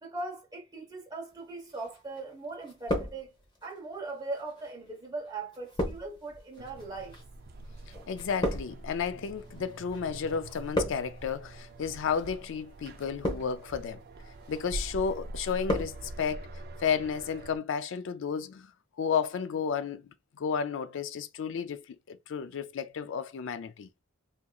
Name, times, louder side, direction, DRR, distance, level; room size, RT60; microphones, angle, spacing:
voice 1, 0.0-3.3 3.6-7.2, right 3 dB, 20° right, 1.1 m, -39 dB
sound 1, 1.7-2.3 2.6-3.6 4.4-10.0 10.3-11.3 12.0-12.3 12.9-13.7 14.2-14.6 15.0-16.0 16.2-16.3, left 1 dB, 20° left, 0.9 m, -35 dB
sound 2, 6.6-17.6, right 1 dB, 50° right, 0.4 m, -44 dB
voice 2, 8.1-14.0 14.5-16.5 16.8-18.7 19.0-23.9, left 6 dB, 60° left, 0.4 m, -32 dB
3.5 x 2.8 x 2.3 m
head